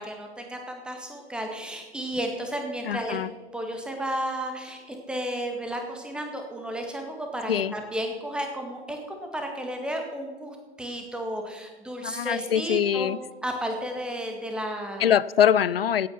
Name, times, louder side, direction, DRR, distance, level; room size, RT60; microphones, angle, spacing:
voice 1, 0.0-3.2 3.5-13.1 13.4-15.2, right 1 dB, 5° right, 3 dB, 1.9 m, -33 dB
voice 2, 2.9-3.3 7.5-7.7 12.0-13.2 15.0-16.1, left 9 dB, 60° left, 20 dB, 0.6 m, -23 dB
16.5 x 9.2 x 5.8 m, 1.3 s
figure-of-eight pair, 120°, 33 cm